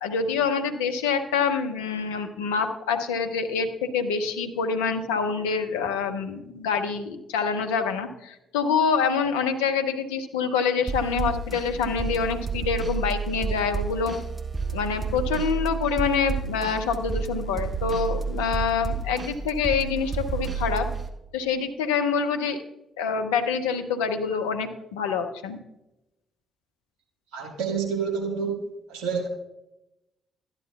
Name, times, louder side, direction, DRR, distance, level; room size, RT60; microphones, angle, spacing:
voice 1, 0.0-14.2 14.7-20.9 21.3-22.6 23.0-25.6, left 6 dB, 75° left, 7 dB, 0.6 m, -26 dB
sound 1, 10.9-21.1, right 5 dB, 25° right, 1.2 m, -30 dB
voice 2, 27.3-28.6 28.9-29.3, right 6 dB, 65° right, 0 dB, 1.6 m, -28 dB
13.0 x 10.5 x 2.3 m, 0.92 s
figure-of-eight pair, 40°, 0 cm